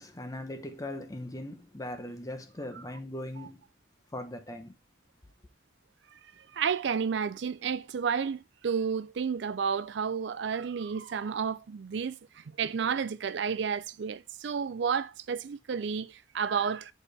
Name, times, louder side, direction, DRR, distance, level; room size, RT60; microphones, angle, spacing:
voice 1, 0.0-3.6 4.1-4.8, left 1 dB, 20° left, 0.8 m, -39 dB
voice 2, 6.5-16.9, right 6 dB, 65° right, 0.4 m, -31 dB
7.2 x 4.2 x 3.3 m
head